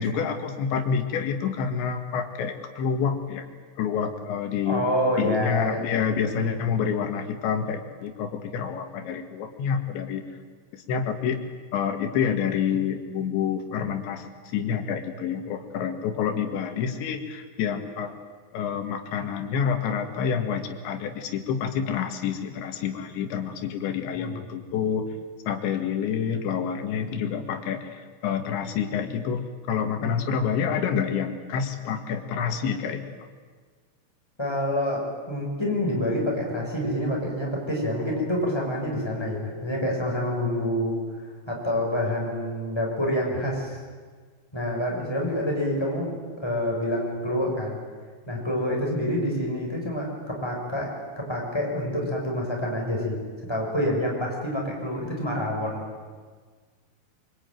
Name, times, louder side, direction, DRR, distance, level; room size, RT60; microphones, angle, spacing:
voice 1, 0.0-3.4 3.8-4.8 5.2-10.2 10.7-11.4 11.7-14.3 14.5-18.1 18.5-25.1 25.5-33.1, left 7 dB, 85° left, 6 dB, 4.2 m, -28 dB
voice 2, 4.7-5.8 24.2-24.4 34.4-41.0 41.5-43.8 44.5-47.8 48.3-53.2 53.5-55.9, equal, 5° left, -2 dB, 6.5 m, -27 dB
25.0 x 24.5 x 9.4 m, 1.5 s
omnidirectional pair, 5.1 m